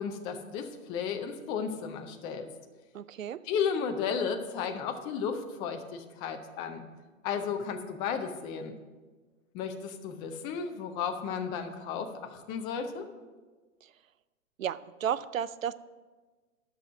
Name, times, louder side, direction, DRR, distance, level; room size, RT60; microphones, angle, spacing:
voice 1, 0.0-2.5 3.4-6.8 7.2-8.7 9.5-13.0, left 6 dB, 15° left, 6 dB, 0.4 m, -34 dB
voice 2, 2.9-3.4 13.8-13.9 14.6-15.7, right 9 dB, 80° right, 16 dB, 0.6 m, -33 dB
11.0 x 6.2 x 6.2 m, 1.3 s
hypercardioid pair, 120°, 40 cm